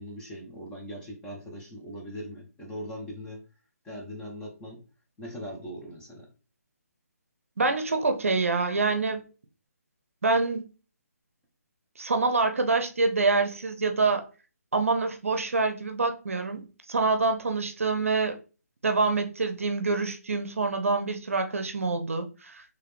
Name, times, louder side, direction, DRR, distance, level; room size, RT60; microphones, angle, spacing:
voice 1, 0.0-3.4 3.8-4.8 5.2-6.3, equal, 10° left, 1.0 m, -40 dB
voice 2, 7.6-9.2 10.2-10.6 12.0-14.3 14.7-18.4 18.8-22.6, right 3 dB, 55° right, 0.7 m, -26 dB
4.7 x 3.0 x 3.3 m
figure-of-eight pair, 145°, 9 cm